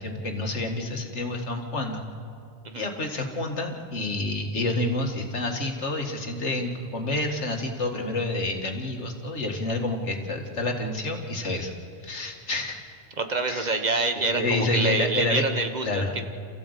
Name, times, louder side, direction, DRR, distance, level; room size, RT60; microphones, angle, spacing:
voice 1, 0.0-2.0 2.7-11.7 12.0-12.8 13.5-13.7 14.2-15.5 15.8-16.2, left 2 dB, 80° left, 3 dB, 2.3 m, -28 dB
voice 2, 13.2-16.2, right 3 dB, 40° right, 7 dB, 1.3 m, -26 dB
28.0 x 15.0 x 8.2 m, 2.4 s
omnidirectional pair, 1.2 m